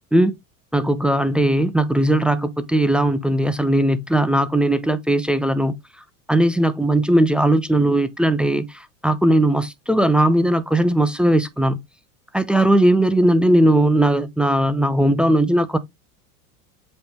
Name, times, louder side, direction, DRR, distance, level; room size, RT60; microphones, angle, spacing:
voice 1, 0.7-5.7 6.3-11.8 12.3-15.8, right 1 dB, ahead, 0.6 m, -18 dB
7.9 x 3.3 x 3.7 m
hypercardioid pair, 85°, 47 cm